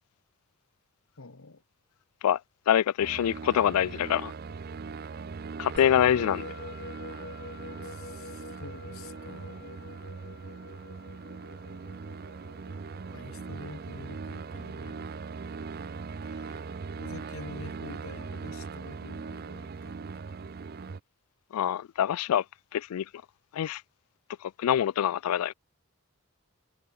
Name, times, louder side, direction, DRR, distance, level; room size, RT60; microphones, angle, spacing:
voice 1, 1.2-1.6 7.8-10.0 13.1-15.1 16.2-20.2 20.7-20.9, left 3 dB, 70° left, 1.3 m, -48 dB
voice 2, 2.7-4.3 5.6-6.4 21.5-22.4 22.7-23.1 23.5-23.8 24.4-25.5, left 10 dB, 85° left, 0.3 m, -25 dB
sound 1, 3.0-21.0, right 4 dB, 45° right, 0.5 m, -40 dB
Musical instrument, 5.8-16.4, left 3 dB, 50° left, 2.7 m, -47 dB
head